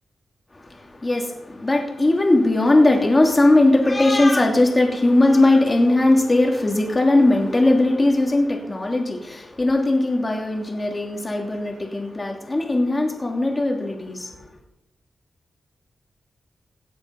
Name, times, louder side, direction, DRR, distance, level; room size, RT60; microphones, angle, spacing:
voice 1, 1.0-14.3, left 2 dB, 25° left, 2.8 m, -19 dB
17.0 x 9.0 x 5.3 m
cardioid pair, 85°, 0 cm